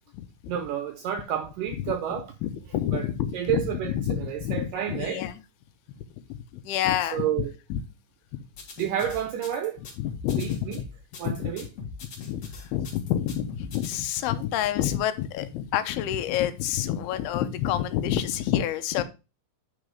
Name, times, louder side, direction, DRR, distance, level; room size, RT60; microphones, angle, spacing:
voice 1, 0.5-2.3 2.9-3.1 3.3-5.2 7.1-7.5 8.8-9.8 10.4-10.8 11.2-11.7, right 10 dB, 80° right, 2.0 m, -30 dB
voice 2, 2.4-5.3 6.3-7.8 8.3-8.4 10.0-10.7 11.2-11.5 12.2-19.0, left 11 dB, 85° left, 2.7 m, -28 dB
sound 1, 8.5-14.0, left 5 dB, 50° left, 2.5 m, -41 dB
9.6 x 4.0 x 4.9 m
omnidirectional pair, 4.5 m